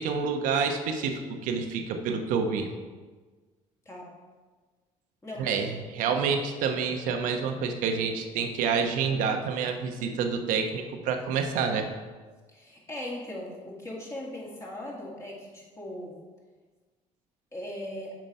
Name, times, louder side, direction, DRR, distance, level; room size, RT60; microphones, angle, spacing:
voice 1, 0.0-2.7 5.4-11.9, right 5 dB, 75° right, 5 dB, 0.9 m, -28 dB
voice 2, 5.2-5.6 12.5-16.1 17.5-18.1, left 1 dB, 20° left, -3 dB, 2.2 m, -39 dB
7.6 x 5.1 x 5.4 m, 1.4 s
cardioid pair, 115°, 14 cm